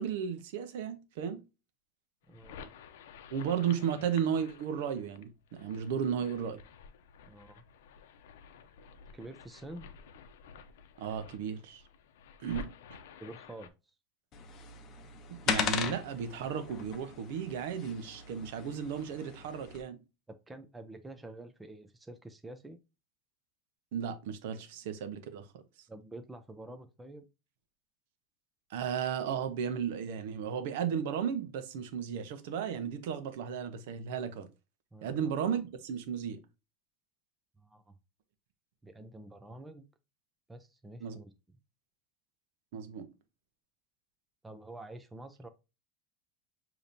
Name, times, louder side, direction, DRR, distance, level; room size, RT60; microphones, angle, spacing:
voice 1, 0.0-1.4 3.3-6.6 11.0-11.8 12.4-12.7 15.3-20.0 23.9-25.6 28.7-34.5 35.0-36.4 41.0-41.2 42.7-43.1, right 7 dB, 70° right, 0.9 m, -34 dB
sound 1, 2.2-13.7, left 5 dB, 80° left, 0.6 m, -51 dB
voice 2, 2.3-2.7 7.3-7.6 9.1-9.8 13.2-13.7 20.3-22.8 25.9-27.2 34.9-35.1 37.6-37.9 38.8-39.8 40.5-41.3 44.4-45.5, right 2 dB, 10° right, 0.5 m, -48 dB
sound 2, 14.3-19.8, left 7 dB, 35° left, 0.7 m, -38 dB
6.8 x 3.0 x 2.6 m
supercardioid pair, 150°, 0 cm